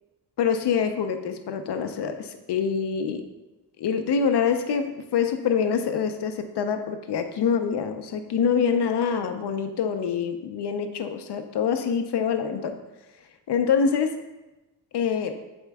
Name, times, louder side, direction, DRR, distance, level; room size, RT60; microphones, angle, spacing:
voice 1, 0.4-3.2 3.8-12.8 13.5-14.1 14.9-15.3, left 6 dB, 75° left, 7 dB, 0.6 m, -25 dB
8.2 x 4.4 x 3.4 m, 1.1 s
wide cardioid pair, 170°, 41 cm